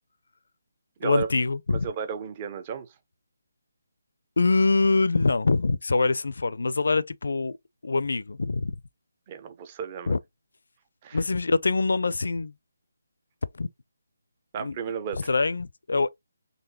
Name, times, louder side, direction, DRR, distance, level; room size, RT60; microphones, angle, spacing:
voice 1, 1.0-1.9 4.4-7.6 7.8-8.8 10.1-10.2 11.1-12.5 13.5-13.7 14.6-14.8 15.3-16.1, left 3 dB, 70° left, 0.4 m, -24 dB
voice 2, 1.7-2.9 9.3-10.2 11.0-11.2 14.5-15.3, right 7 dB, 25° right, 0.6 m, -33 dB
4.0 x 3.0 x 2.8 m
hypercardioid pair, 165°, 0 cm